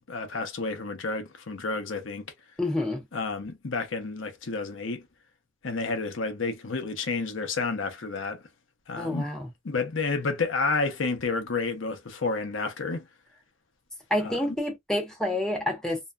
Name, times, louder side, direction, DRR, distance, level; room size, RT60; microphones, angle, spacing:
voice 1, 0.0-2.3 3.1-5.0 5.6-8.4 8.9-9.3 9.6-13.1 14.2-14.5, left 4 dB, 80° left, 0.7 m, -30 dB
voice 2, 2.6-3.1 9.0-9.5 14.1-16.0, left 1 dB, 5° left, 0.9 m, -28 dB
2.7 x 2.1 x 2.2 m
head